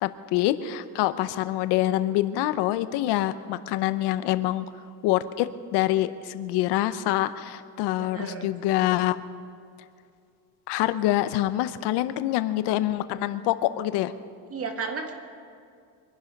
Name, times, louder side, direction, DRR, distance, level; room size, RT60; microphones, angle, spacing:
voice 1, 0.0-4.6 5.0-9.2 10.7-14.1, left 14 dB, 75° left, 12 dB, 0.9 m, -25 dB
voice 2, 8.0-8.5 14.5-15.1, right 5 dB, 35° right, 4 dB, 2.0 m, -33 dB
24.5 x 11.0 x 5.3 m, 2.3 s
cardioid pair, 140°, 42 cm